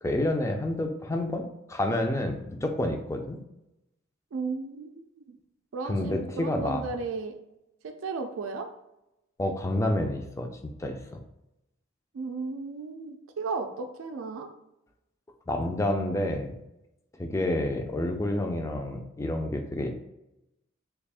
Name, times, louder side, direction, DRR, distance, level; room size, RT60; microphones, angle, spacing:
voice 1, 0.0-1.4 1.7-3.4 5.9-6.8 9.4-10.5 10.8-11.2 15.5-16.6 17.2-19.9, left 1 dB, 15° left, 4 dB, 0.3 m, -29 dB
voice 2, 4.3-5.4 5.7-7.4 7.8-8.7 12.1-14.5, right 4 dB, 85° right, 5 dB, 0.4 m, -35 dB
3.4 x 2.4 x 3.4 m, 0.90 s
head